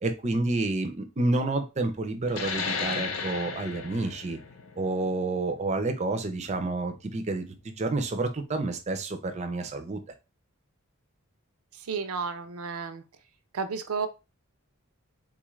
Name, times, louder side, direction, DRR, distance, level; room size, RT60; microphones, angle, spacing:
voice 1, 0.0-4.4 4.8-10.0, right 2 dB, 30° right, 7 dB, 0.5 m, -29 dB
sound 1, 2.3-7.4, left 5 dB, 65° left, 0.6 m, -35 dB
voice 2, 11.9-13.0 13.5-14.1, right 5 dB, 85° right, 9 dB, 0.5 m, -32 dB
3.8 x 2.4 x 3.0 m, 0.27 s
head